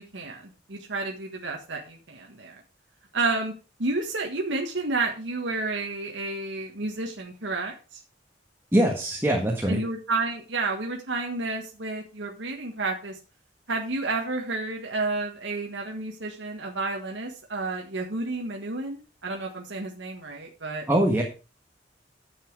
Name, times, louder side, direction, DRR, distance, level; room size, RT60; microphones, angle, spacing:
voice 1, 0.0-2.6 3.1-3.5 3.8-8.0 9.7-13.2 13.7-20.8, right 3 dB, 85° right, 1 dB, 1.6 m, -31 dB
voice 2, 8.7-9.8 20.9-21.2, right 1 dB, 15° right, 1 dB, 1.5 m, -22 dB
10.0 x 7.4 x 4.8 m, 0.33 s
head